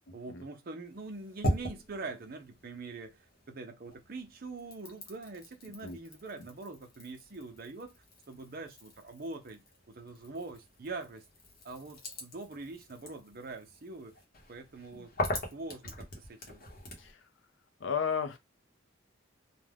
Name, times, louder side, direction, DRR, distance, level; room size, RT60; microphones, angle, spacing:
voice 1, 0.1-9.6 9.9-11.2 11.6-14.2 14.5-15.1 15.5-16.6, right 3 dB, 45° right, 0.5 m, -44 dB
sound 1, 0.8-3.5 3.8-17.1, left 1 dB, 45° left, 0.9 m, -41 dB
voice 2, 5.7-6.0 17.0-17.2 17.8-18.4, left 6 dB, 65° left, 0.5 m, -34 dB
2.4 x 2.2 x 3.3 m
head